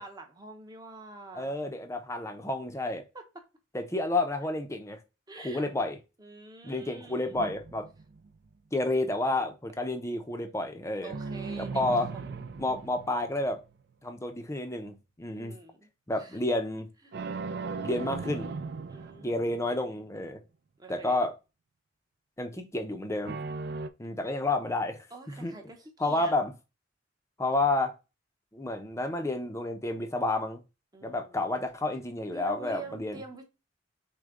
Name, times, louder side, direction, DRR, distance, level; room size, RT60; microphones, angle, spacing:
voice 1, 0.0-1.6 3.1-3.2 5.3-5.6 6.2-7.4 11.0-11.8 12.2-12.9 15.4-15.9 16.2-16.4 17.0-17.1 18.9-19.8 20.8-21.2 25.1-26.3 30.9-31.4 32.3-33.4, right 3 dB, 20° right, 0.9 m, -46 dB
voice 2, 1.3-3.0 3.7-5.0 5.4-6.0 6.6-7.9 8.7-11.1 11.6-12.1 12.6-13.6 14.0-15.6 16.1-16.9 17.8-18.6 19.2-20.4 20.9-21.3 22.4-23.4 24.0-25.6 26.0-26.5 27.4-27.9 28.5-30.6 31.0-33.2, left 2 dB, 15° left, 0.6 m, -30 dB
sound 1, 7.3-8.5 11.1-13.8 17.1-19.8 23.3-23.9, right 4 dB, 55° right, 0.4 m, -38 dB
6.2 x 2.2 x 3.7 m
head